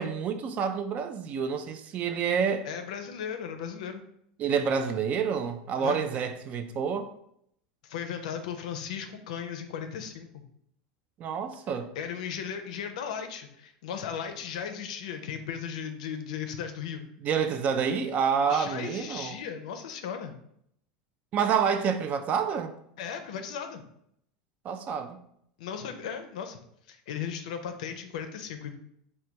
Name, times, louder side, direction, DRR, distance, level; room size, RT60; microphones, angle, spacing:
voice 1, 0.0-2.7 4.4-7.1 11.2-11.9 17.2-19.4 21.3-22.7 24.6-25.2, right 6 dB, 40° right, 0.3 m, -28 dB
voice 2, 2.6-4.0 5.8-6.0 7.8-10.4 12.0-17.0 18.5-20.3 23.0-23.8 25.6-26.6 26.9-28.8, left 7 dB, 80° left, 0.4 m, -36 dB
3.3 x 2.2 x 2.8 m
supercardioid pair, 105°, 4 cm